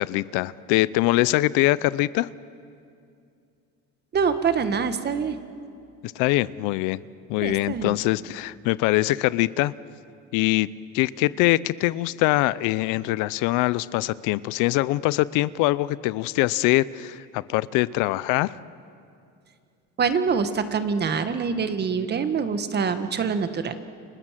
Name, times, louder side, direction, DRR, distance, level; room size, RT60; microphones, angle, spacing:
voice 1, 0.0-2.3 6.0-7.0 7.3-9.7 10.3-10.7 10.9-18.6, left 18 dB, 80° left, 18 dB, 0.7 m, -23 dB
voice 2, 4.1-5.4 7.4-8.0 20.0-23.8, right 6 dB, 35° right, 9 dB, 1.6 m, -25 dB
29.5 x 26.0 x 7.6 m, 2.4 s
cardioid pair, 130°, 31 cm